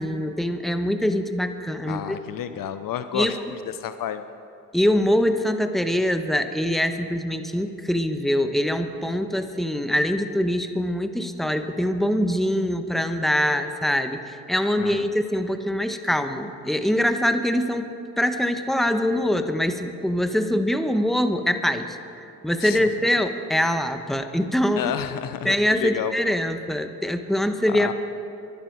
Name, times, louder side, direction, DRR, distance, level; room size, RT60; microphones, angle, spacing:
voice 1, 0.0-2.0 3.1-3.3 4.7-14.2 14.5-17.9 18.2-22.0 22.4-24.8 25.4-27.9, equal, ahead, 8 dB, 1.2 m, -23 dB
voice 2, 1.9-4.2 14.8-15.1 22.6-22.9 24.8-26.1 27.7-27.9, left 10 dB, 50° left, 11 dB, 0.7 m, -31 dB
23.0 x 11.5 x 4.7 m, 2.7 s
hypercardioid pair, 45°, 43 cm